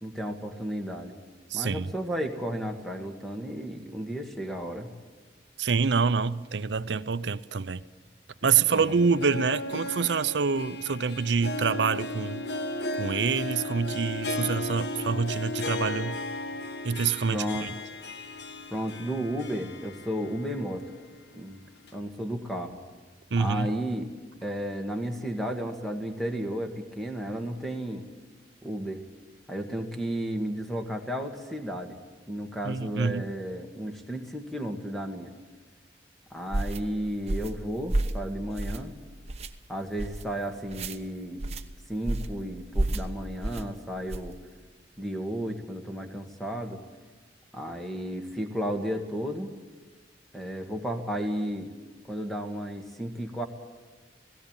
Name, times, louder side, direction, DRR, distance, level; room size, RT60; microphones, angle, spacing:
voice 1, 0.0-1.2 1.5-4.9 8.7-9.0 17.3-17.7 18.7-20.9 21.3-21.6 21.9-22.8 23.4-24.1 24.4-28.1 28.6-29.0 29.5-32.0 32.3-35.3 36.3-38.9 39.7-41.4 41.9-44.4 45.0-46.8 47.5-49.5 50.3-51.7 52.1-53.5, equal, ahead, 1.8 m, -33 dB
voice 2, 1.5-1.9 5.6-7.8 8.4-12.4 13.0-16.2 16.8-17.7 23.3-23.7 32.6-33.3, right 5 dB, 75° right, 0.6 m, -26 dB
Harp, 8.4-20.6 20.9-21.0 21.9-22.0, left 2 dB, 70° left, 1.3 m, -35 dB
sound 1, 36.5-36.8 37.3-37.6 37.9-38.2 38.6-38.9 39.3-39.5 40.0-40.2 40.7-41.0 41.4-41.6 42.1-42.4 42.7-43.1 43.4-43.7 44.1-44.3, right 1 dB, 35° right, 1.0 m, -29 dB
17.5 x 17.0 x 9.0 m
head